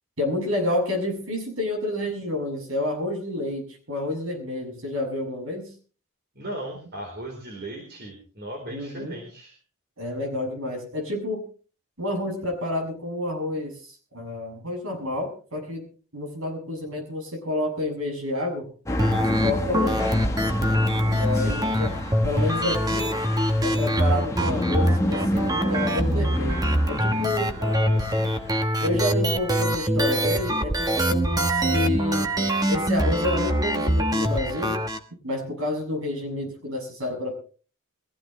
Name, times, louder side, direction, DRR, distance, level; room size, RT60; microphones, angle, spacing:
voice 1, 0.2-5.7 8.7-9.2 10.0-11.4 12.0-15.9 16.1-18.7 19.3-20.2 21.1-21.9 22.2-23.2 23.6-27.6 28.8-32.3 32.7-34.8 35.2-37.3, left 1 dB, 65° right, 3 dB, 6.8 m, -29 dB
voice 2, 6.3-9.6 21.3-21.7 27.6-28.4, right 1 dB, 45° right, 1 dB, 4.1 m, -37 dB
sound 1, 18.9-28.7, left 1 dB, 15° left, 1.3 m, -31 dB
sound 2, 19.0-35.0, equal, 15° right, 1.3 m, -24 dB
22.5 x 15.5 x 3.2 m, 0.39 s
head